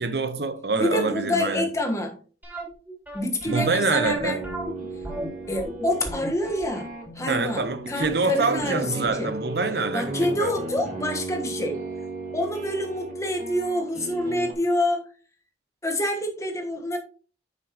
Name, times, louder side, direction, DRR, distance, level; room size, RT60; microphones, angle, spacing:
voice 1, 0.0-1.7 3.4-4.4 7.3-10.5, right 3 dB, 60° right, 0.9 m, -26 dB
voice 2, 0.7-2.2 3.1-4.4 5.5-6.9 7.1-9.3 9.9-11.8 12.3-15.0 15.8-17.0, left 1 dB, 15° left, 1.3 m, -27 dB
sound 1, 2.4-9.3 9.6-9.7 10.2-10.4 10.6-10.7, right 1 dB, 10° right, 3.4 m, -36 dB
sound 2, 4.3-14.5, right 2 dB, 45° right, 1.7 m, -36 dB
9.2 x 6.5 x 3.0 m
head